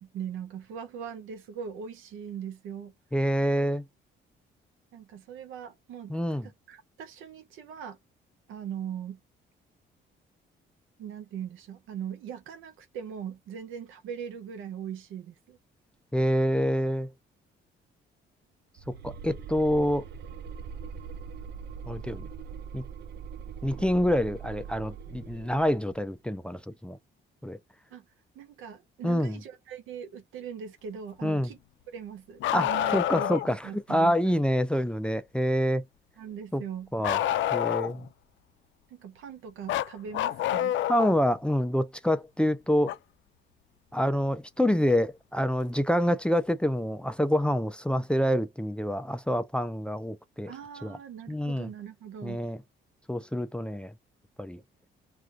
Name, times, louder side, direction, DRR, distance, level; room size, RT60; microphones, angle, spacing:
voice 1, 0.0-2.9 4.9-8.0 8.5-9.2 11.0-15.6 27.9-28.0 28.3-31.6 31.9-34.4 36.2-36.9 38.9-40.8 50.5-52.4, right 8 dB, 90° right, 0.8 m, -40 dB
voice 2, 3.1-3.8 6.1-6.5 16.1-17.1 18.9-20.0 21.9-22.3 22.7-22.8 23.6-27.0 27.4-27.6 29.0-29.4 31.2-31.5 32.5-35.8 36.5-36.6 36.9-37.2 37.5-38.1 40.9-43.0 43.9-50.5 50.8-51.0 51.3-51.7 52.2-52.6 53.1-53.9 54.4-54.6, equal, 5° left, 0.4 m, -27 dB
sound 1, 18.8-26.0, right 6 dB, 55° right, 0.5 m, -42 dB
Bark, 32.4-33.5 37.0-38.1 39.7-41.2 42.9-43.0 44.9-45.0 46.1-46.2, left 12 dB, 70° left, 0.4 m, -28 dB
2.5 x 2.4 x 3.1 m
cardioid pair, 90°, 20 cm